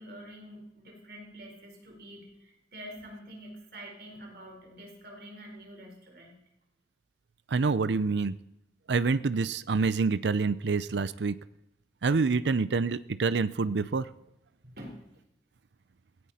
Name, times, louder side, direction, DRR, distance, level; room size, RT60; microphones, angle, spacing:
voice 1, 0.0-6.4 14.6-15.1, equal, 60° right, 1 dB, 4.5 m, -46 dB
voice 2, 7.5-8.3 8.9-11.4 12.0-14.1, right 4 dB, 80° right, 15 dB, 0.5 m, -27 dB
17.0 x 17.0 x 4.3 m, 0.87 s
head